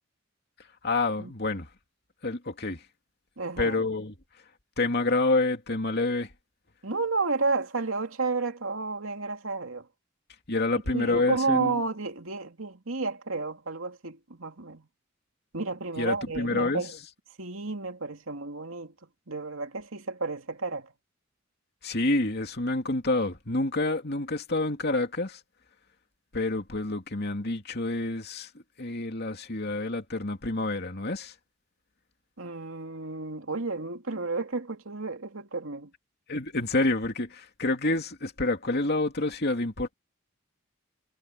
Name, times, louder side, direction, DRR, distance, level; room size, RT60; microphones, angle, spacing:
voice 1, 0.8-1.7 2.2-2.8 3.6-4.1 4.8-6.3 10.5-11.8 16.0-16.8 21.8-25.4 26.3-28.5 28.8-31.3 36.3-39.9, left 2 dB, 50° left, 2.6 m, -28 dB
voice 2, 3.4-3.8 6.8-9.9 10.9-14.9 15.5-16.9 17.4-18.9 19.3-20.9 32.4-35.9, right 3 dB, 75° right, 2.7 m, -31 dB
head